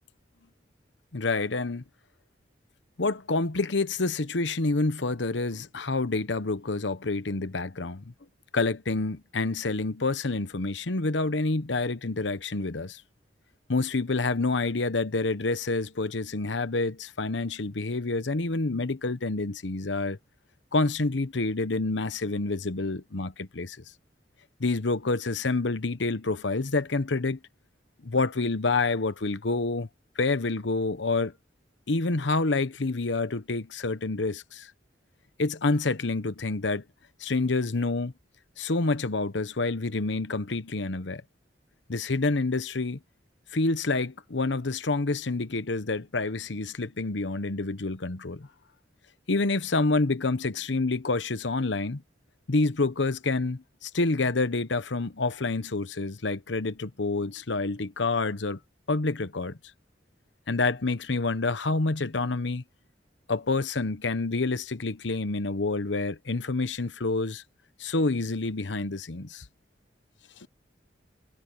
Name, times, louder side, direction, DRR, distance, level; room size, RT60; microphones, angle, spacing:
voice 1, 1.1-1.8 3.0-8.1 8.5-13.0 13.7-20.2 20.7-23.8 24.6-27.4 28.0-29.9 30.2-31.3 31.9-34.7 35.4-36.8 37.2-38.1 38.6-41.2 41.9-43.0 43.5-48.5 49.3-52.0 52.5-58.6 58.9-59.6 60.5-62.6 63.3-67.4 67.8-69.4 70.4-70.5, left 3 dB, 80° left, 1.0 m, -28 dB
head